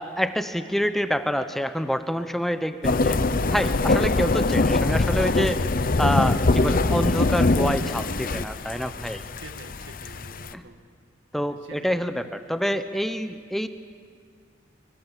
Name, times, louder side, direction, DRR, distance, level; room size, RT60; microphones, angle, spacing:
voice 1, 0.0-3.2 3.5-5.7 6.0-9.2 10.5-10.6 11.3-13.7, equal, ahead, 9 dB, 0.8 m, -27 dB
sound 1, 2.8-10.5, left 3 dB, 50° left, 0.8 m, -23 dB
voice 2, 9.4-10.8 11.4-11.9, right 2 dB, 85° right, 6 dB, 2.0 m, -46 dB
24.0 x 23.0 x 7.4 m, 2.1 s
head